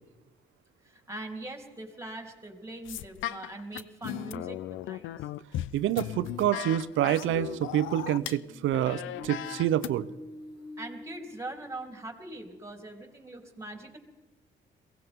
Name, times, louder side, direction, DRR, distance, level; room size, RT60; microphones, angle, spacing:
voice 1, 0.8-5.3 10.8-14.0, right 2 dB, 15° right, 3 dB, 3.3 m, -42 dB
sound 1, 2.8-8.4 8.7-9.9, left 13 dB, 80° left, 0.5 m, -37 dB
voice 2, 5.7-10.1, right 12 dB, 80° right, 16 dB, 0.7 m, -27 dB
Human voice, 6.9-11.9, left 1 dB, 60° left, 2.1 m, -47 dB
22.5 x 17.5 x 3.6 m, 1.2 s
cardioid pair, 90°, 20 cm